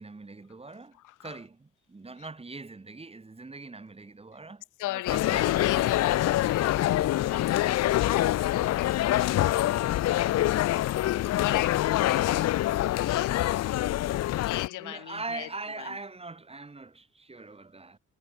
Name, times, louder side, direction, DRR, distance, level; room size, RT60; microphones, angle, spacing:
voice 1, 0.0-4.6 4.9-5.6 14.1-14.2 14.8-18.0, right 3 dB, 20° right, 2.0 m, -42 dB
voice 2, 1.0-1.4 4.8-13.5 14.4-15.5 15.8-16.0, left 17 dB, 90° left, 1.6 m, -36 dB
sound 1, 5.1-14.7, left 14 dB, 60° left, 0.5 m, -25 dB
cardioid pair, 90°, 30 cm